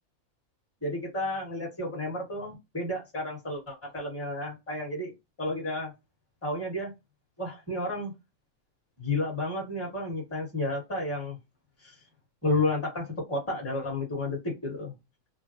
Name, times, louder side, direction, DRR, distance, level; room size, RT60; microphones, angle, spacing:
voice 1, 0.8-5.1 5.4-5.9 6.4-6.9 7.4-8.1 9.0-11.4 11.8-11.9 12.4-14.9, left 2 dB, 10° left, 1.2 m, -31 dB
3.4 x 2.1 x 2.7 m
omnidirectional pair, 1.5 m